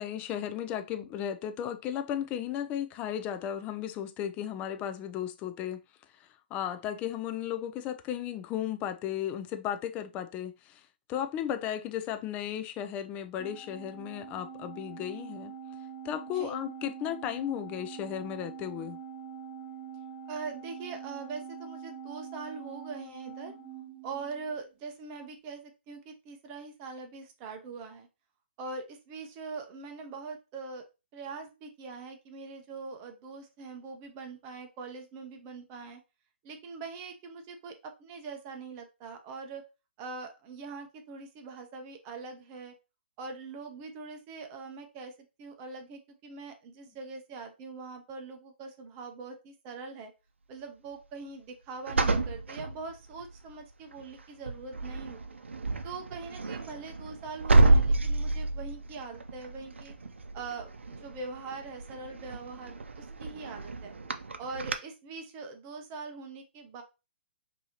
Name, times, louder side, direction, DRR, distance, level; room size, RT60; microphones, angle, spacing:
voice 1, 0.0-5.8 6.2-15.5 16.0-19.0, left 10 dB, 20° left, 0.4 m, -35 dB
Organ, 13.4-24.6, right 7 dB, 5° right, 2.2 m, -44 dB
voice 2, 20.3-23.6 24.0-28.1 28.6-30.8 31.1-36.0 36.4-39.6 40.0-42.7 43.2-45.1 45.4-50.1 50.5-55.2 55.8-59.9 60.3-63.9 64.4-66.8, right 4 dB, 30° right, 0.7 m, -42 dB
sound 1, 51.9-53.4 53.9-54.2 54.4-64.7, right 2 dB, 90° right, 0.6 m, -29 dB
5.4 x 2.8 x 2.9 m
hypercardioid pair, 140°, 6 cm